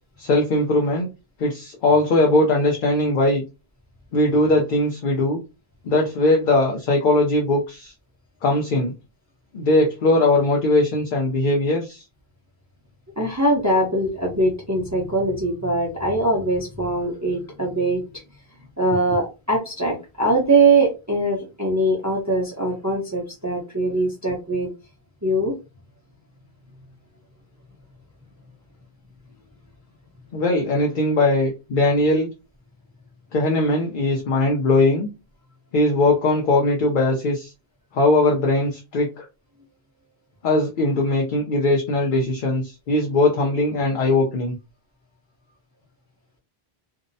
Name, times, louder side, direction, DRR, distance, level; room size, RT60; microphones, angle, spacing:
voice 1, 0.2-1.1 1.4-3.4 4.1-5.4 5.8-7.9 8.4-8.9 9.5-12.0 30.3-32.3 33.3-35.1 35.7-37.5 37.9-39.2 40.4-44.5, left 2 dB, 55° left, -1 dB, 0.7 m, -20 dB
voice 2, 13.2-18.2 18.8-24.7 25.2-25.6, right 2 dB, 20° right, -3 dB, 0.5 m, -22 dB
2.6 x 2.0 x 2.6 m, 0.28 s
omnidirectional pair, 1.1 m